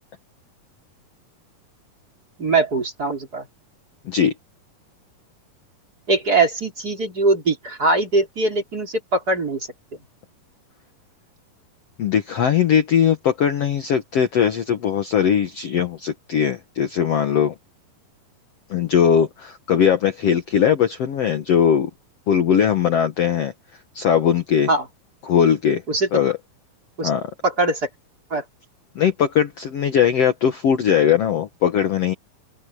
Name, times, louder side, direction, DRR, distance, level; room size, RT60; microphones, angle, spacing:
voice 1, 2.4-3.5 6.1-9.7 24.7-24.9 25.9-26.1 27.0-27.1 27.4-27.9 28.3-28.4, right 3 dB, 25° right, 4.3 m, -21 dB
voice 2, 12.0-17.5 18.7-21.9 22.3-23.5 24.0-24.7 25.2-25.8 26.1-26.4 27.0-27.3 29.0-32.1, left 8 dB, 55° left, 1.9 m, -19 dB
open air
omnidirectional pair, 4.1 m